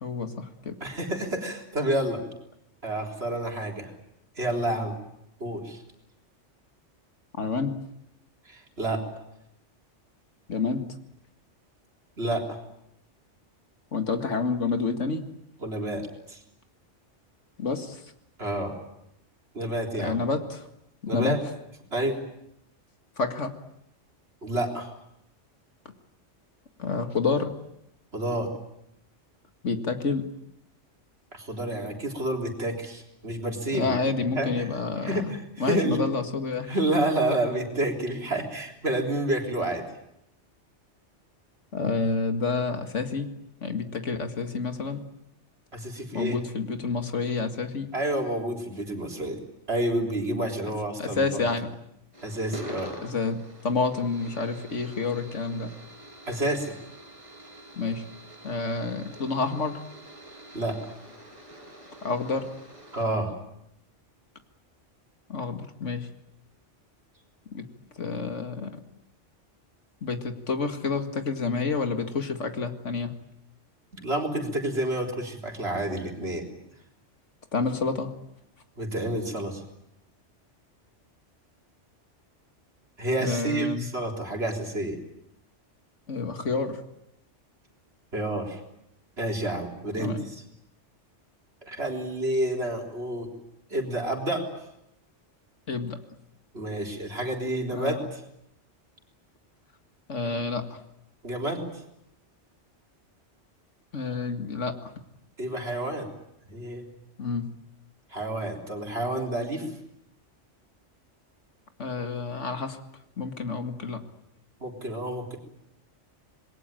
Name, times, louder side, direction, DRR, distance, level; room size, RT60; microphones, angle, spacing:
voice 1, 0.0-0.8 7.4-7.7 10.5-10.9 13.9-15.3 17.6-18.0 20.0-20.7 21.0-21.4 23.2-23.5 26.8-27.5 29.6-30.2 33.7-35.3 35.6-36.8 41.7-43.3 43.6-45.0 46.1-47.9 51.0-51.7 53.0-55.7 57.8-58.0 58.4-59.8 62.0-62.5 65.3-66.1 67.5-67.7 68.0-68.8 70.0-73.1 77.5-78.1 83.2-83.9 86.1-86.8 90.0-90.2 95.7-96.0 97.7-98.1 100.1-100.8 103.9-104.8 107.2-107.5 111.8-112.8 113.2-114.0, left 4 dB, 80° left, 7 dB, 2.3 m, -29 dB
voice 2, 0.8-2.2 2.8-3.9 4.4-5.0 5.4-5.8 8.5-9.0 12.2-12.6 15.6-16.4 18.4-18.7 19.5-20.2 21.1-21.4 21.9-22.2 24.4-24.9 28.1-28.5 31.3-33.9 34.3-34.7 35.0-36.0 36.7-39.8 45.7-46.4 47.9-49.4 49.7-51.2 52.2-53.0 56.3-56.8 60.5-60.8 62.9-63.3 74.0-76.5 78.8-79.6 83.0-85.0 88.1-88.6 89.2-90.4 91.6-93.3 93.7-94.4 96.5-98.2 101.2-101.6 105.4-106.1 106.5-106.8 108.1-109.7 114.6-115.4, right 1 dB, 60° right, 2 dB, 4.1 m, -29 dB
Radio annoyance, 52.1-63.1, right 1 dB, 25° right, 6.7 m, -46 dB
26.5 x 21.0 x 9.0 m, 0.80 s
omnidirectional pair, 1.2 m